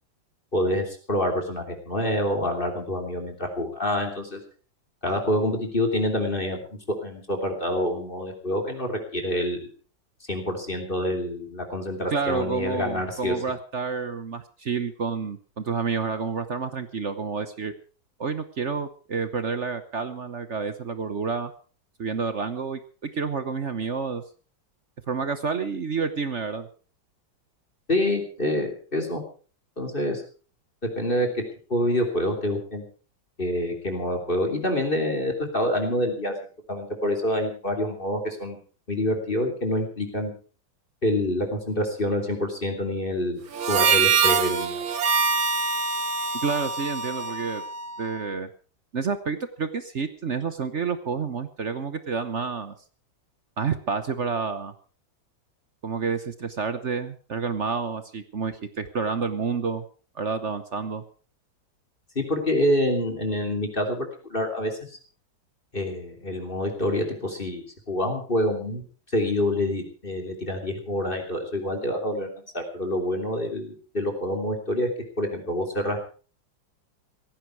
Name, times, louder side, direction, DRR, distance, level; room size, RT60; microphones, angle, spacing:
voice 1, 0.5-4.4 5.0-6.6 7.0-9.7 10.3-13.3 27.9-29.2 29.8-30.2 30.8-32.8 33.4-36.3 36.7-38.6 38.9-40.3 41.0-44.8 62.1-64.8 65.7-68.8 69.1-72.3 72.5-74.9 75.2-76.0, left 1 dB, 25° left, 3 dB, 3.2 m, -27 dB
voice 2, 12.1-17.7 18.2-21.5 22.0-24.2 25.1-26.7 46.4-47.6 48.0-48.5 48.9-52.7 53.6-54.7 55.8-59.8 60.1-61.0, right 5 dB, 45° right, 11 dB, 1.1 m, -29 dB
Harmonica, 43.5-48.2, right 5 dB, 80° right, 2.2 m, -24 dB
17.0 x 15.0 x 4.7 m, 0.39 s
omnidirectional pair, 2.1 m